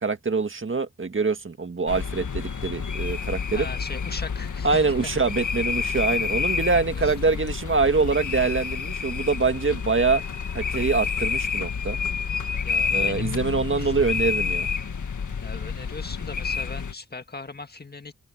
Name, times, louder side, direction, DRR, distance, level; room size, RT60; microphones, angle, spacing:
voice 1, 0.0-3.7 4.6-10.2 10.5-12.0 12.9-14.7, right 4 dB, 40° right, 1.8 m, -24 dB
sound 1, 1.9-16.9, left 6 dB, 75° left, 1.8 m, -29 dB
voice 2, 3.5-4.8 7.0-7.3 12.6-13.4 13.7-13.9 15.4-18.1, left 3 dB, 30° left, 1.7 m, -39 dB
wide cardioid pair, 85°, 30 cm